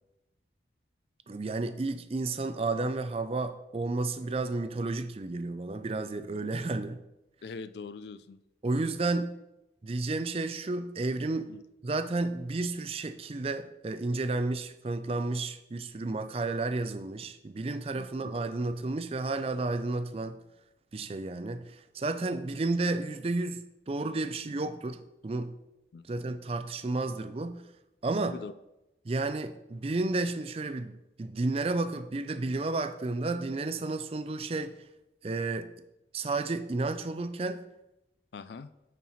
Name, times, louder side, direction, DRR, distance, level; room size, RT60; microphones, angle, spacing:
voice 1, 1.3-7.0 8.6-9.3 9.8-11.5 11.8-20.4 20.9-25.5 26.1-27.6 28.0-28.4 29.0-34.7 35.2-35.7 36.1-37.6, right 2 dB, 35° right, 0.4 m, -32 dB
voice 2, 7.4-8.4 11.5-11.6 18.0-18.1 25.9-26.1 28.2-28.5 38.3-38.7, left 4 dB, 70° left, 0.4 m, -42 dB
9.2 x 4.6 x 4.2 m
head